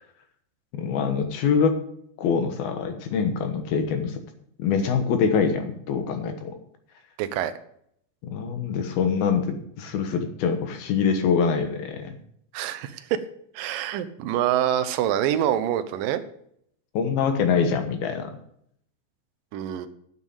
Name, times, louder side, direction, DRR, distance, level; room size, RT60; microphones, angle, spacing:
voice 1, 0.7-1.8 2.2-4.2 4.6-6.5 8.2-12.2 16.9-18.3, left 6 dB, 70° left, 7 dB, 2.8 m, -24 dB
voice 2, 7.2-7.5 12.5-13.1 13.6-16.2 19.5-19.9, right 11 dB, 80° right, 10 dB, 2.0 m, -25 dB
9.2 x 8.3 x 7.2 m, 0.69 s
omnidirectional pair, 5.0 m